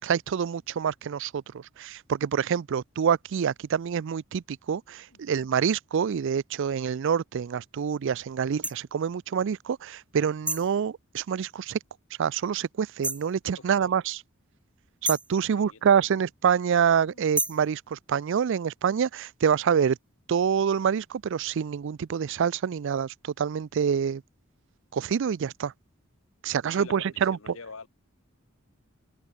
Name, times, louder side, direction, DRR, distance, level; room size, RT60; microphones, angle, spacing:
voice 1, 0.0-11.8 12.2-14.2 15.0-20.0 20.3-24.2 24.9-25.7 26.4-27.4, right 7 dB, 65° right, 0.4 m, -26 dB
sound 1, 8.6-8.8 10.5-10.7 13.0-13.3 15.0-15.3 17.3-17.7, right 2 dB, 5° right, 1.0 m, -30 dB
voice 2, 13.6-13.9 15.5-16.0 17.0-17.3 26.7-27.9, left 4 dB, 75° left, 1.6 m, -46 dB
head